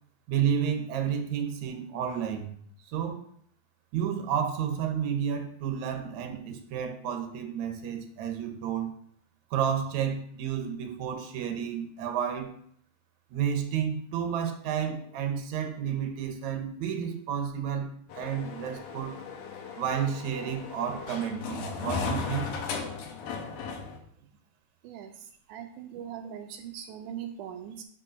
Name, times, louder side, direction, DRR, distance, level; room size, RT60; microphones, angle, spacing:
voice 1, 0.3-2.5 2.9-3.2 3.9-8.9 9.5-12.5 13.3-19.3 19.8-22.5, right 8 dB, 65° right, 5 dB, 2.0 m, -31 dB
sound 1, 18.1-24.0, left 5 dB, 65° left, 2.3 m, -36 dB
voice 2, 24.8-27.8, right 9 dB, 85° right, 5 dB, 1.7 m, -41 dB
6.2 x 5.3 x 6.3 m, 0.63 s
omnidirectional pair, 4.2 m